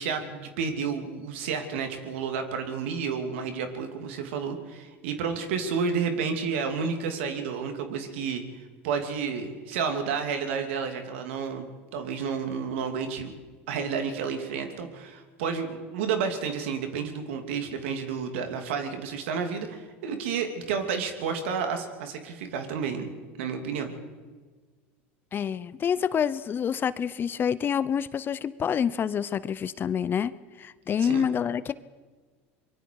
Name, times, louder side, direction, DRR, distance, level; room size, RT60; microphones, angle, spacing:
voice 1, 0.0-8.4 8.8-13.3 13.7-23.1 23.4-23.9 31.0-31.3, right 6 dB, 80° right, 5 dB, 3.1 m, -31 dB
voice 2, 25.3-31.7, left 8 dB, 35° left, 17 dB, 0.8 m, -27 dB
24.0 x 23.0 x 4.9 m, 1.4 s
supercardioid pair, 100°, 6 cm